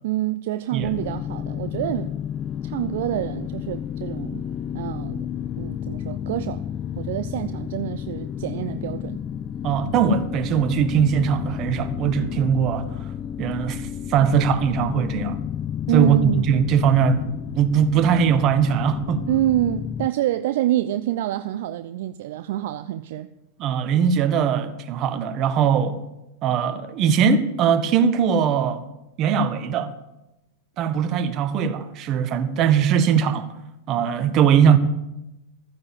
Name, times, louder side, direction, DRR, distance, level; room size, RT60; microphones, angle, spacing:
voice 1, 0.0-2.1 2.6-4.5 4.7-5.3 5.6-6.6 7.0-9.2 15.9-16.4 19.3-23.3, right 13 dB, 60° right, 0.5 m, -26 dB
sound 1, 0.8-20.1, left 9 dB, 30° left, 0.5 m, -31 dB
voice 2, 9.6-12.8 13.4-15.4 15.9-17.2 17.5-19.2 23.6-26.0 26.4-28.8 29.2-29.9 30.8-33.5 33.9-34.8, right 7 dB, 40° right, 1.5 m, -20 dB
14.5 x 9.6 x 7.2 m
hypercardioid pair, 100°, 0 cm